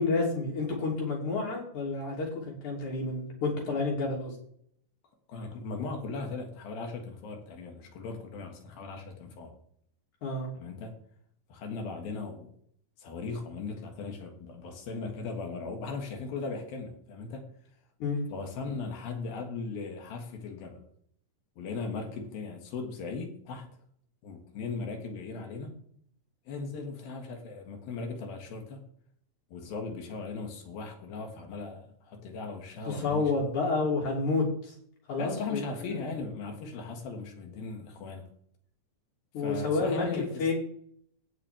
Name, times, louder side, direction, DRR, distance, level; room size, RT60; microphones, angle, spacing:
voice 1, 0.0-4.4 10.2-10.5 18.0-18.2 32.9-34.7 35.1-35.6 39.3-40.5, left 3 dB, 55° left, -2 dB, 4.3 m, -29 dB
voice 2, 5.3-9.6 10.6-11.0 11.5-12.5 13.0-17.5 18.3-20.8 21.6-23.7 24.2-25.8 26.5-28.8 29.5-33.6 35.2-38.3 39.4-40.4, left 4 dB, 90° left, 3 dB, 3.6 m, -38 dB
17.5 x 6.0 x 3.4 m, 0.63 s
omnidirectional pair, 4.1 m